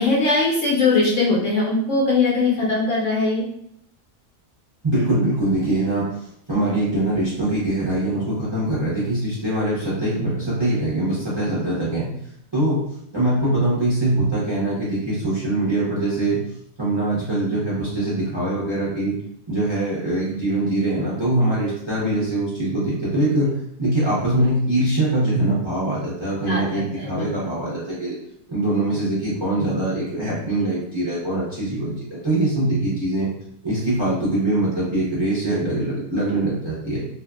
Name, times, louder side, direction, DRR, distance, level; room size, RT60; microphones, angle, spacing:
voice 1, 0.0-3.4 26.5-27.3, left 3 dB, 65° left, -6 dB, 0.8 m, -20 dB
voice 2, 4.8-6.0 6.5-12.1 12.5-12.8 13.1-16.4 16.8-19.2 19.5-23.5 23.8-28.1 28.5-33.3 33.6-37.0, right 1 dB, 35° right, -8 dB, 0.4 m, -23 dB
2.7 x 2.5 x 2.3 m, 0.72 s
omnidirectional pair, 1.8 m